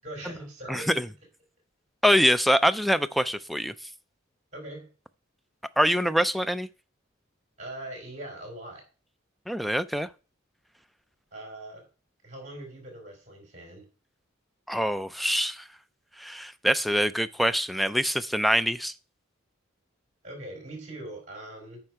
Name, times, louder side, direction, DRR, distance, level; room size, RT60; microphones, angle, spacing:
voice 1, 0.0-1.0 4.5-4.9 7.6-8.8 11.3-11.9 12.2-13.9 20.2-21.8, right 1 dB, 40° right, 4.3 m, -41 dB
voice 2, 0.7-1.1 2.0-3.7 5.8-6.7 9.5-10.1 14.7-15.6 16.2-18.9, equal, ahead, 0.3 m, -24 dB
8.9 x 5.3 x 4.8 m
head